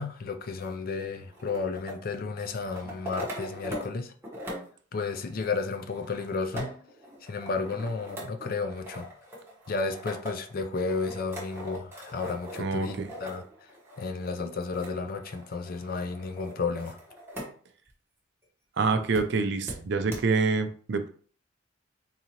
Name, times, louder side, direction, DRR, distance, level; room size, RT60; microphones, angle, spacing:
voice 1, 0.0-4.1 4.9-6.7 7.2-9.1 9.7-13.4 14.0-17.0, left 4 dB, 45° left, 6 dB, 0.4 m, -32 dB
sound 1, 0.6-4.0 4.2-17.5 17.9-18.0 19.1-19.2 19.7-19.8 20.1-20.2, equal, 10° right, 1.1 m, -41 dB
voice 2, 12.6-13.1 18.8-21.1, right 4 dB, 60° right, 8 dB, 0.5 m, -26 dB
3.9 x 2.7 x 2.9 m, 0.44 s
head